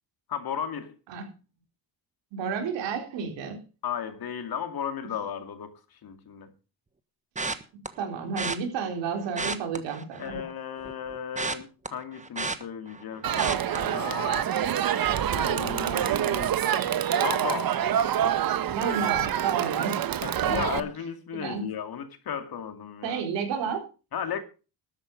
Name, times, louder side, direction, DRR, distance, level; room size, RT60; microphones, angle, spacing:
voice 1, 0.3-1.0 3.8-6.5 10.2-14.5 15.3-16.6 17.2-17.8 20.2-23.2 24.1-24.4, left 8 dB, 60° left, 2.5 m, -35 dB
voice 2, 2.3-3.6 8.0-10.5 18.7-20.0 20.5-20.8 21.3-21.6 23.0-23.8, right 6 dB, 90° right, 3.9 m, -31 dB
sound 1, 7.4-7.9 8.4-8.6 9.2-10.5 10.8-13.0 13.4-13.8 14.2-14.5 14.8-14.9, right 3 dB, 15° right, 1.4 m, -32 dB
Crowd, 13.2-20.8, right 10 dB, 55° right, 1.2 m, -26 dB
13.0 x 8.9 x 5.3 m
cardioid pair, 95°, 42 cm